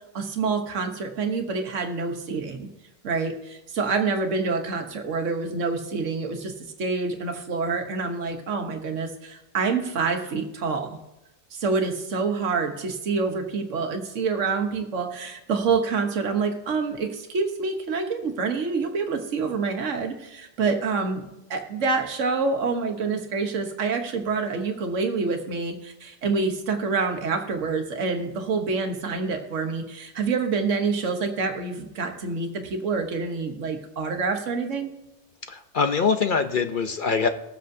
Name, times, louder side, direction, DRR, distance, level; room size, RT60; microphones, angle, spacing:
voice 1, 0.1-2.7 3.0-6.5 6.8-11.0 11.5-34.9, right 4 dB, 90° right, 5 dB, 1.4 m, -27 dB
voice 2, 35.5-37.3, left 5 dB, 50° left, 7 dB, 0.7 m, -23 dB
20.5 x 7.7 x 2.7 m, 0.91 s
omnidirectional pair, 1.2 m